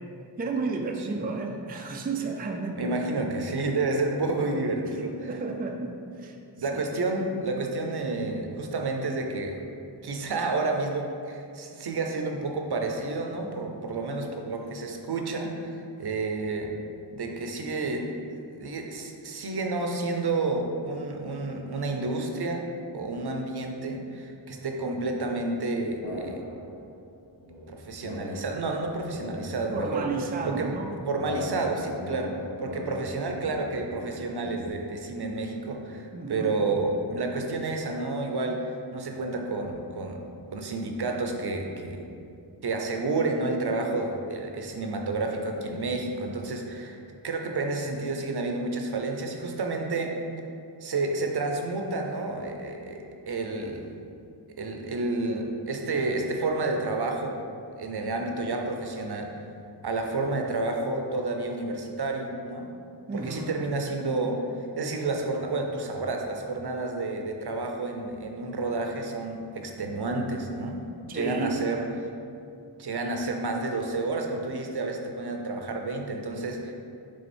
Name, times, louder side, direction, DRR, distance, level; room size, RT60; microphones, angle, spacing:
voice 1, 0.4-3.2 5.2-6.4 6.7-6.8 29.7-31.0 35.2-35.3 35.9-36.6 63.1-63.6 71.1-71.6, right 4 dB, 20° right, 2 dB, 0.4 m, -32 dB
voice 2, 2.8-5.3 6.6-9.6 10.0-16.7 17.1-18.1 18.6-22.7 22.9-26.4 27.7-30.1 30.4-30.7 31.1-32.3 32.6-40.2 40.5-42.0 42.6-47.0 47.2-50.1 50.8-53.0 53.3-53.9 54.6-57.4 57.8-59.3 59.8-62.7 63.1-64.4 64.8-70.8 71.1-71.8 72.8-76.7, right 3 dB, 65° right, 3 dB, 0.7 m, -30 dB
sound 1, 26.0-26.9 27.4-34.7, left 1 dB, 85° left, 1.0 m, -39 dB
6.3 x 3.5 x 4.4 m, 2.5 s
wide cardioid pair, 105°, 43 cm